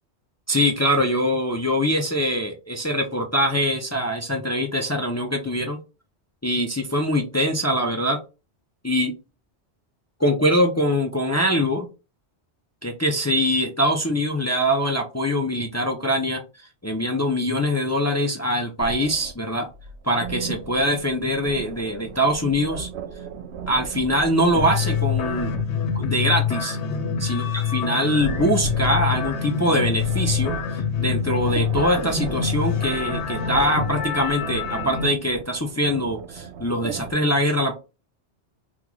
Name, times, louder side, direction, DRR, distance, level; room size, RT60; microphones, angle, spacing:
voice 1, 0.5-5.8 6.4-8.2 8.8-9.1 10.2-11.9 12.8-16.4 16.8-19.7 20.0-22.9 23.7-25.5 25.9-26.8 27.2-30.6 31.0-37.8, equal, 25° left, 1 dB, 0.4 m, -23 dB
sound 1, 18.8-25.6 26.0-37.1, right 5 dB, 80° right, 0.9 m, -36 dB
sound 2, 24.6-35.1, left 7 dB, 80° left, 0.9 m, -26 dB
3.0 x 2.3 x 3.6 m, 0.29 s
omnidirectional pair, 1.1 m